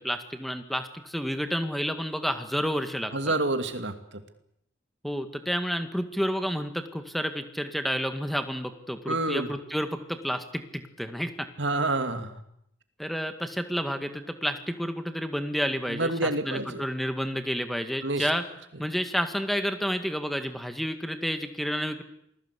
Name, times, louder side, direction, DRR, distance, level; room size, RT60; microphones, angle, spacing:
voice 1, 0.0-3.1 5.0-11.5 13.0-18.5 18.8-22.0, equal, ahead, 7 dB, 2.0 m, -30 dB
voice 2, 3.1-3.9 9.1-9.5 11.6-12.4 15.9-16.8 18.0-18.3, right 2 dB, 65° right, 8 dB, 2.6 m, -28 dB
28.0 x 20.5 x 8.3 m, 0.74 s
head